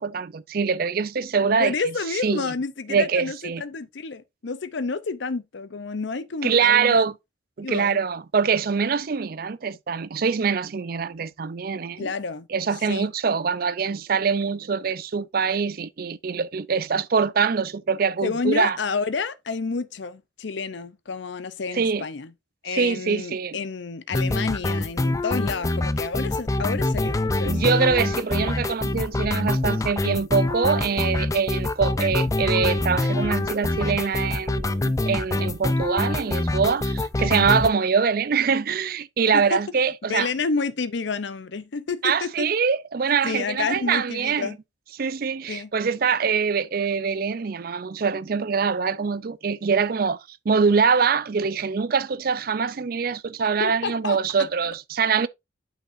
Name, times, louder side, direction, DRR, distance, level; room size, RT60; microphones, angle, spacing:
voice 1, 0.0-1.7 2.2-2.5 2.9-3.6 6.4-7.1 7.6-12.1 12.5-18.8 21.7-22.0 22.7-23.6 27.4-40.3 42.0-44.5 45.0-55.3, right 5 dB, 50° right, 0.4 m, -24 dB
voice 2, 1.6-7.0 7.6-8.0 12.0-12.5 12.9-13.1 18.2-22.3 22.6-27.7 39.3-39.6 40.1-42.5 43.2-44.6 45.5-45.7 53.6-54.2, left 4 dB, 65° left, 0.6 m, -29 dB
sound 1, 24.1-37.7, left 2 dB, 15° left, 0.4 m, -25 dB
8.5 x 5.8 x 2.6 m
head